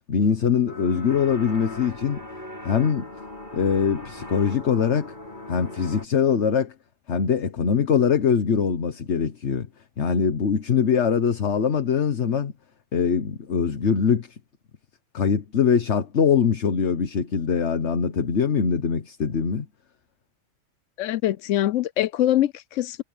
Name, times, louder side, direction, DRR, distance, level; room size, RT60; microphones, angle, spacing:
voice 1, 0.1-2.2 2.6-3.1 3.5-5.1 5.5-6.7 7.1-9.7 10.0-12.5 12.9-14.4 15.1-19.6, left 6 dB, 65° left, 1.5 m, -22 dB
sound 1, 0.7-6.1, left 1 dB, 40° left, 4.6 m, -39 dB
voice 2, 21.0-23.0, left 13 dB, 80° left, 1.0 m, -23 dB
omnidirectional pair, 1.3 m